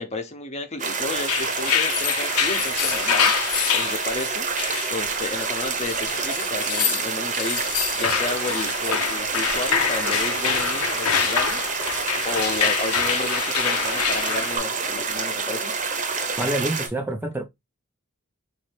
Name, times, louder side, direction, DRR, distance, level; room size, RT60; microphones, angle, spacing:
voice 1, 0.0-4.5 4.9-11.9 12.2-15.7, left 2 dB, 30° left, 0.7 m, -32 dB
sound 1, 0.8-16.9, right 5 dB, 35° right, 0.7 m, -28 dB
sound 2, 1.1-14.6, left 7 dB, 80° left, 0.7 m, -26 dB
voice 2, 16.4-17.4, right 1 dB, 10° right, 0.3 m, -26 dB
4.0 x 2.6 x 3.2 m
head